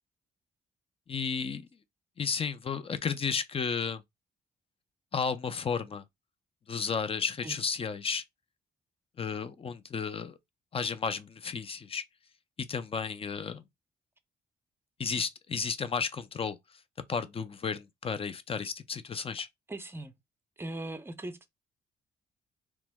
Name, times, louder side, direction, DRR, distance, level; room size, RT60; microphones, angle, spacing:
voice 1, 1.1-1.6 2.2-4.0 5.1-6.0 6.7-8.2 9.2-10.4 10.7-12.0 12.7-13.6 15.0-16.6 17.1-19.5, left 6 dB, 30° left, 0.5 m, -33 dB
voice 2, 19.7-20.2 20.6-21.5, right 2 dB, 15° right, 0.5 m, -39 dB
3.0 x 2.0 x 3.4 m
cardioid pair, 90°, 18 cm